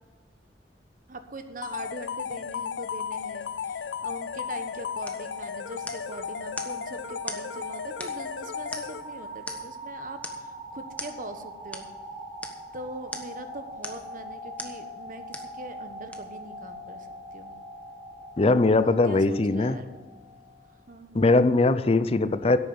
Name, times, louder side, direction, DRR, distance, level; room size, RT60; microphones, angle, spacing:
voice 1, 1.1-11.9 12.7-17.5 18.8-20.0 20.9-21.3, right 2 dB, 50° right, 8 dB, 1.2 m, -42 dB
sound 1, 1.6-9.4, left 7 dB, 80° left, 0.4 m, -35 dB
sound 2, 3.2-20.9, right 1 dB, 5° right, 2.6 m, -43 dB
sound 3, 5.1-5.3 5.9-6.2 6.6-6.8 7.3-7.5 8.0-8.3 8.7-9.1 9.5-9.8 10.2-10.5 11.0-11.2 11.7-11.9 12.4-12.6 13.1-13.4 13.8-14.1 14.6-14.8 15.3-15.6 16.1-16.2, left 2 dB, 10° left, 1.1 m, -39 dB
voice 2, 18.4-19.8 21.1-22.6, left 3 dB, 35° left, 13 dB, 0.6 m, -21 dB
11.0 x 8.6 x 7.8 m, 1.4 s
head